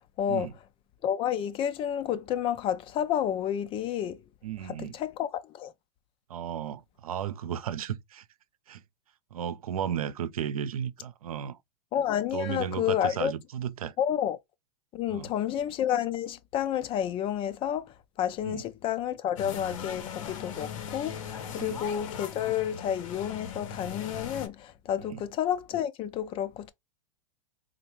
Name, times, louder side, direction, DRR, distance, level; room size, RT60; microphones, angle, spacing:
voice 1, 1.0-4.2 5.0-5.7 11.9-13.3 14.0-14.4 14.9-17.9 18.2-21.2 21.5-26.7, left 10 dB, 30° left, 0.5 m, -30 dB
voice 2, 4.4-4.9 6.3-8.2 8.7-8.8 9.3-11.6 12.3-13.9 15.1-15.3 18.4-18.6 21.6-21.8 25.0-25.2, right 9 dB, 90° right, 0.5 m, -34 dB
sound 1, 19.4-24.5, left 7 dB, 65° left, 0.8 m, -39 dB
3.8 x 2.1 x 2.9 m
hypercardioid pair, 120°, 18 cm